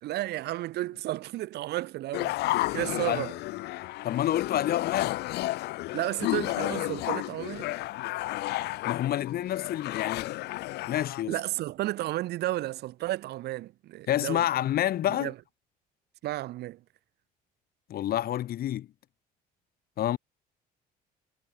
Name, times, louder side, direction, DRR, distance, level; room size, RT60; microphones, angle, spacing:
voice 1, 0.0-2.3 2.7-3.3 5.9-7.7 11.3-14.4 15.1-15.3 16.2-16.8, right 16 dB, 75° right, 2.5 m, -32 dB
sound 1, 2.1-11.2, left 18 dB, 80° left, 1.4 m, -32 dB
voice 2, 4.0-5.2 8.8-10.3 10.9-11.3 14.1-15.3 17.9-18.9 20.0-20.2, left 12 dB, 65° left, 4.4 m, -28 dB
cardioid pair, 110°, 17 cm